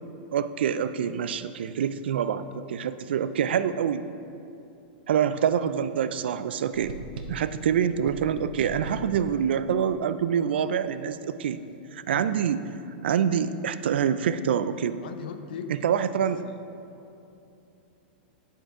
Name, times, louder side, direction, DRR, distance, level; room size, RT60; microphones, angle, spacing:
voice 1, 0.3-4.1 5.1-7.0 7.3-11.6 11.9-12.6 13.0-15.0 15.7-16.5, right 8 dB, 90° right, 13 dB, 0.4 m, -26 dB
sound 1, 6.7-7.6 8.0-9.4, right 4 dB, 70° right, 0.8 m, -39 dB
voice 2, 15.0-15.8 16.2-16.7, left 7 dB, 60° left, 8 dB, 0.6 m, -40 dB
10.0 x 4.5 x 4.8 m, 2.8 s
supercardioid pair, 170°, 6 cm